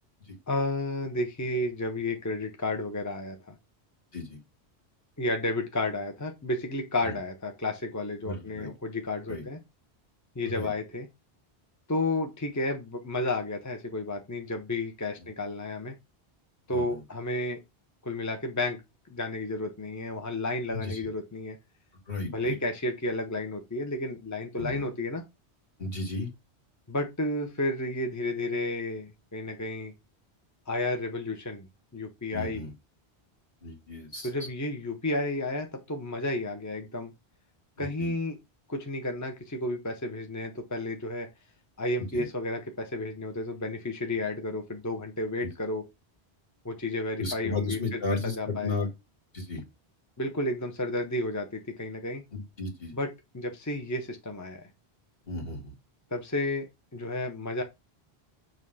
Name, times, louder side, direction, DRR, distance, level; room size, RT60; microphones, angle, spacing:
voice 1, 0.5-3.6 5.2-9.6 10.3-11.1 11.9-15.9 16.7-17.6 18.0-18.8 19.1-21.6 22.3-25.2 26.9-29.9 30.7-31.7 31.9-32.7 34.2-37.1 37.8-38.4 38.7-41.3 41.8-45.8 46.6-48.0 48.4-48.9 50.2-52.2 52.9-53.1 53.3-54.7 56.1-56.7 56.9-57.6, left 2 dB, 15° left, 1.0 m, -32 dB
voice 2, 8.2-8.7 9.3-9.4 10.5-10.7 16.7-17.0 20.7-21.0 22.1-22.5 24.5-24.8 25.8-26.3 32.3-32.7 33.6-34.3 37.8-38.1 42.0-42.3 45.4-45.5 47.2-48.9 49.3-49.6 52.3-52.9 55.3-55.7, left 3 dB, 60° left, 2.5 m, -34 dB
7.3 x 3.2 x 5.6 m
omnidirectional pair, 1.1 m